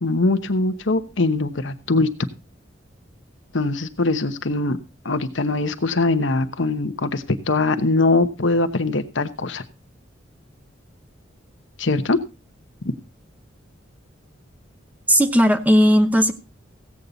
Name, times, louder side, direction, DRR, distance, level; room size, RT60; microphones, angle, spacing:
voice 1, 0.0-2.3 3.5-4.8 5.0-9.6 11.8-12.2 12.8-12.9, left 2 dB, 70° left, 9 dB, 1.0 m, -22 dB
voice 2, 15.1-16.3, equal, 10° right, 9 dB, 0.8 m, -16 dB
16.0 x 8.5 x 4.0 m, 0.30 s
head